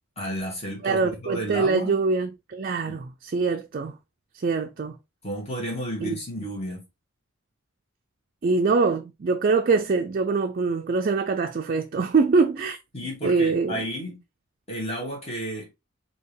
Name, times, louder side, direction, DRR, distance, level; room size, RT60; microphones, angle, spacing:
voice 1, 0.2-2.0 2.9-3.0 5.2-6.9 12.9-14.2 14.7-15.7, equal, 30° left, 1.8 m, -32 dB
voice 2, 0.8-4.0 4.4-5.0 6.0-6.2 8.4-12.8 13.2-13.8, right 4 dB, 45° right, 0.4 m, -23 dB
4.4 x 2.8 x 3.2 m
head